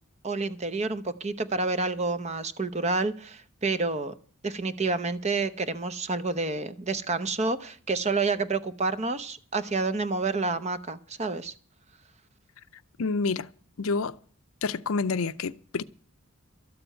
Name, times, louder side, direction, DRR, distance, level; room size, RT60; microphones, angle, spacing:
voice 1, 0.2-4.1 4.4-11.5, right 3 dB, 30° right, 0.8 m, -29 dB
voice 2, 13.0-13.5 13.8-14.2 14.6-15.8, left 4 dB, 75° left, 0.6 m, -28 dB
13.0 x 6.9 x 9.0 m
head